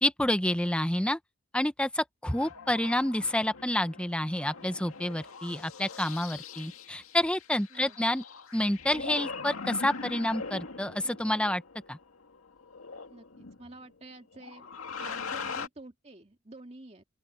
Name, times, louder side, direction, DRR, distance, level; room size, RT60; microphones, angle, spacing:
voice 1, 0.0-1.2 1.5-8.2 8.5-11.6 11.9-12.0, left 1 dB, 5° left, 0.9 m, -29 dB
sound 1, 2.3-13.9 14.3-15.7, left 4 dB, 85° left, 2.1 m, -42 dB
voice 2, 13.1-14.7 15.0-17.0, right 2 dB, 30° right, 2.5 m, -49 dB
open air
head